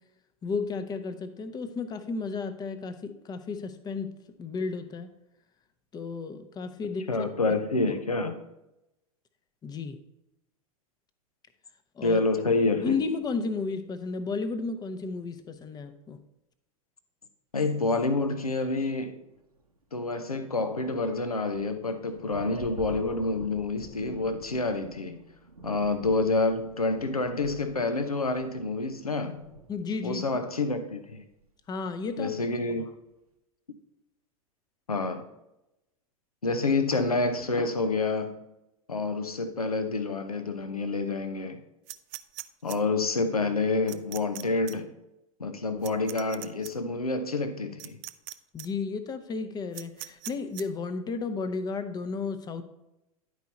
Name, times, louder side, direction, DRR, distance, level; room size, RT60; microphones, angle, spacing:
voice 1, 0.4-4.1 4.4-5.1 5.9-7.6 9.6-10.0 12.0-12.2 12.5-16.2 29.7-30.2 31.7-32.3 32.7-32.9 48.5-52.6, left 4 dB, 20° left, 0.7 m, -33 dB
voice 2, 7.1-8.4 12.0-13.0 17.5-19.2 19.9-25.2 25.6-29.4 30.0-31.2 32.2-32.9 34.9-35.3 36.4-38.4 38.9-41.6 42.6-44.9 45.4-48.0, left 3 dB, 90° left, 0.6 m, -28 dB
sound 1, 18.9-19.0 19.3-30.3 31.4-31.5 31.8-32.0, right 1 dB, 90° right, 0.8 m, -48 dB
sound 2, 41.9-42.8 43.9-44.4 44.7-44.8 45.8-46.7 47.8-48.3 48.6-48.7 49.7-50.6, right 16 dB, 40° right, 0.4 m, -40 dB
10.5 x 4.6 x 4.0 m
figure-of-eight pair, 90°, 19 cm